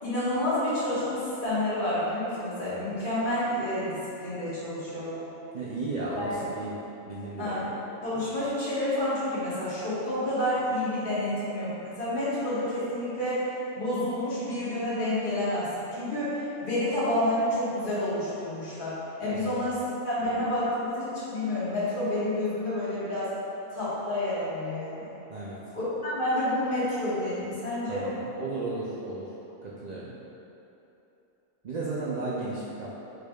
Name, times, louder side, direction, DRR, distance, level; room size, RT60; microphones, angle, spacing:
voice 1, 0.0-5.2 6.2-6.4 7.4-7.6 8.0-13.5 13.7-23.3 23.7-25.1 25.7-28.1, left 1 dB, 40° left, -11 dB, 1.5 m, -29 dB
voice 2, 5.5-6.8 7.1-7.6 19.2-19.8 25.3-25.6 27.9-29.3 29.6-30.1 31.6-32.9, right 2 dB, 90° right, -7 dB, 0.3 m, -34 dB
4.9 x 4.4 x 2.3 m, 3.0 s
omnidirectional pair, 1.4 m